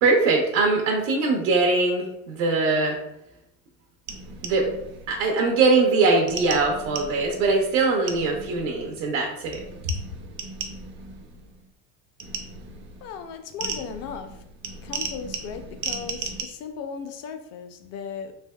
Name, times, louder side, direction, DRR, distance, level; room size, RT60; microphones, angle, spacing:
voice 1, 0.0-3.0 4.4-4.7 5.1-9.6, right 3 dB, 80° right, 0 dB, 0.7 m, -22 dB
sound 1, 4.1-5.5 6.3-9.1 9.5-11.7 12.2-16.4, right 4 dB, 35° right, 0.4 m, -37 dB
voice 2, 13.0-14.3 14.8-18.3, left 6 dB, 45° left, 8 dB, 0.4 m, -36 dB
3.3 x 2.7 x 2.2 m, 0.79 s
supercardioid pair, 120°, 38 cm